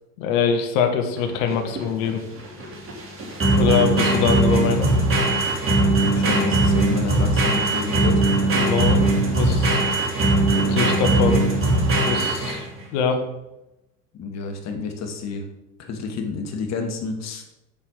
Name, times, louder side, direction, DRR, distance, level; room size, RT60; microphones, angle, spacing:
voice 1, 0.2-2.2 3.6-4.9 8.5-9.8 10.5-11.6 12.0-12.7 12.9-13.2, left 6 dB, 55° left, 5 dB, 1.6 m, -23 dB
sound 1, 1.2-12.8, right 2 dB, 25° right, 2.7 m, -20 dB
voice 2, 6.0-8.3 14.1-15.5 15.8-17.5, left 4 dB, 35° left, 4 dB, 2.1 m, -30 dB
9.1 x 5.5 x 6.6 m, 0.93 s
hypercardioid pair, 95°, 48 cm